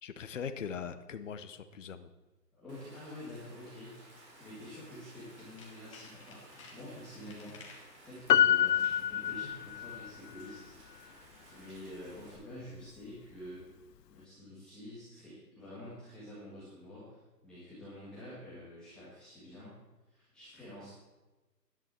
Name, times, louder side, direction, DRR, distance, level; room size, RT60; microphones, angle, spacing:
voice 1, 0.0-2.1, left 7 dB, 50° left, 10 dB, 0.9 m, -41 dB
voice 2, 2.5-7.6 8.0-10.8 11.1-13.6 14.1-19.7 20.1-20.9, left 1 dB, ahead, -12 dB, 1.5 m, -48 dB
Rain, 2.7-12.3, right 1 dB, 45° right, 5.1 m, -57 dB
Tools, 5.1-7.9 8.4-8.7 9.0-9.1, left 4 dB, 20° left, 1.4 m, -55 dB
Piano, 8.3-10.1 10.4-10.5, left 10 dB, 75° left, 0.7 m, -27 dB
13.5 x 11.0 x 4.4 m, 1.1 s
hypercardioid pair, 170°, 49 cm